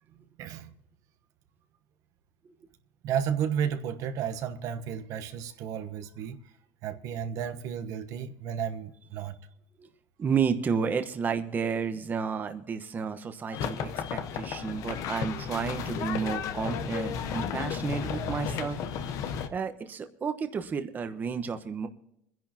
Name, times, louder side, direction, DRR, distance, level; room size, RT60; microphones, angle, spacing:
voice 1, 0.4-0.7 3.0-6.4 6.8-9.4, right 8 dB, 60° right, 1.1 m, -32 dB
voice 2, 10.2-18.8 19.5-21.9, right 6 dB, 25° right, 1.1 m, -31 dB
sound 1, 13.5-19.5, left 7 dB, 55° left, 1.1 m, -33 dB
25.0 x 10.5 x 2.9 m
cardioid pair, 130°, 7 cm